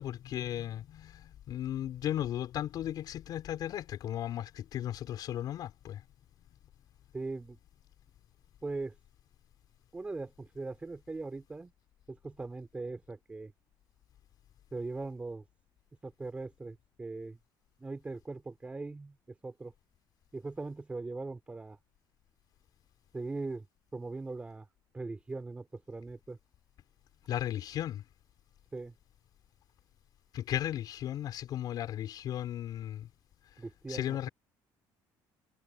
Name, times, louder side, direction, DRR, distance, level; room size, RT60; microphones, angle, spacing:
voice 1, 0.0-6.0 27.3-28.0 30.3-33.1 33.9-34.3, left 11 dB, 50° left, 4.7 m, -36 dB
voice 2, 7.1-7.6 8.6-8.9 9.9-11.7 12.1-13.5 14.7-15.4 16.0-17.4 17.8-19.2 19.4-19.7 20.3-21.8 23.1-23.7 23.9-24.7 24.9-26.4 28.7-28.9 33.6-34.2, right 3 dB, 15° right, 4.7 m, -40 dB
cardioid pair, 145°, 8 cm